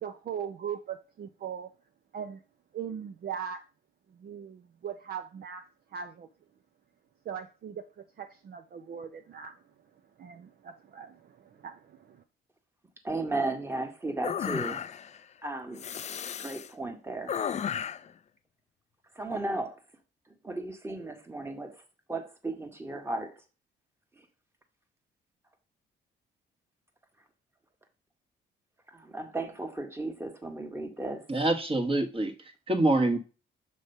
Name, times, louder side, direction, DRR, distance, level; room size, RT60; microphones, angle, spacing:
voice 1, 0.0-1.7 2.1-2.4 2.7-3.6 4.1-6.3 7.3-9.5 10.2-12.2, right 8 dB, 50° right, 0.6 m, -40 dB
voice 2, 13.0-14.8 15.4-15.9 16.4-17.3 19.1-19.8 20.4-21.8 22.1-23.3 24.2-24.3 28.9-31.3, right 2 dB, 10° right, 1.5 m, -35 dB
sound 1, 14.2-15.2 15.8-16.7 17.3-18.1, left 8 dB, 35° left, 0.4 m, -34 dB
voice 3, 31.3-33.2, right 2 dB, 25° right, 1.3 m, -26 dB
6.8 x 3.2 x 5.4 m
cardioid pair, 90°, 20 cm